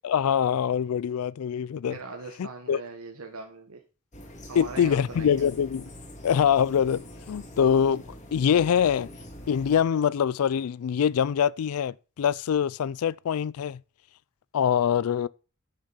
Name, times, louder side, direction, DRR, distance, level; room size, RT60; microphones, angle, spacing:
voice 1, 0.0-2.0 2.4-2.8 4.6-5.9 6.2-8.0 8.3-9.1 9.5-13.8 14.5-15.3, left 8 dB, 85° left, 0.4 m, -24 dB
voice 2, 1.9-3.8 4.5-5.4, right 3 dB, 85° right, 1.4 m, -40 dB
sound 1, 4.1-9.8, equal, 35° left, 2.5 m, -44 dB
9.5 x 6.6 x 5.6 m
head